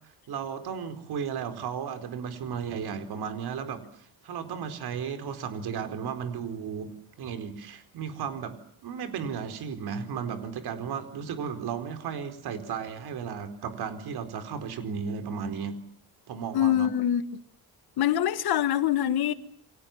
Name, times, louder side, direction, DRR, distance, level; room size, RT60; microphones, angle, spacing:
voice 1, 0.3-8.6 8.8-15.8 16.3-16.9, right 7 dB, 85° right, 4.5 m, -34 dB
voice 2, 16.5-17.2 18.0-19.3, left 11 dB, 80° left, 1.8 m, -24 dB
30.0 x 24.0 x 7.3 m
cardioid pair, 175°, 37 cm